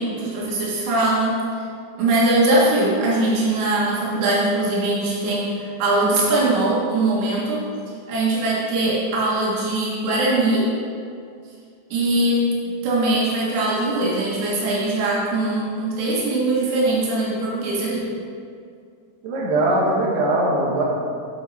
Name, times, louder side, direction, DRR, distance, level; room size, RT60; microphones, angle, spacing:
voice 1, 0.0-1.4 2.0-7.7 8.1-10.7 11.9-12.6 12.8-18.1, right 2 dB, 85° right, -5 dB, 4.4 m, -21 dB
voice 2, 19.2-20.8, right 1 dB, 65° right, -4 dB, 3.3 m, -20 dB
9.6 x 8.5 x 4.3 m, 2.3 s
omnidirectional pair, 5.5 m